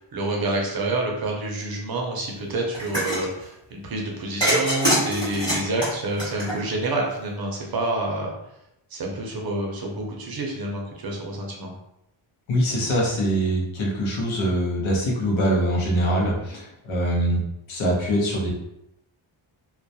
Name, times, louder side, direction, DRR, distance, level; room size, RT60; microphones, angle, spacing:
voice 1, 0.0-8.3 8.9-11.7, right 2 dB, 50° right, 0 dB, 0.5 m, -28 dB
sound 1, 2.7-3.3 4.4-6.9, right 1 dB, 10° left, 1.1 m, -24 dB
voice 2, 12.5-17.4 17.7-18.5, equal, 70° left, -2 dB, 0.8 m, -23 dB
2.2 x 2.1 x 2.6 m, 0.82 s
wide cardioid pair, 165°, 49 cm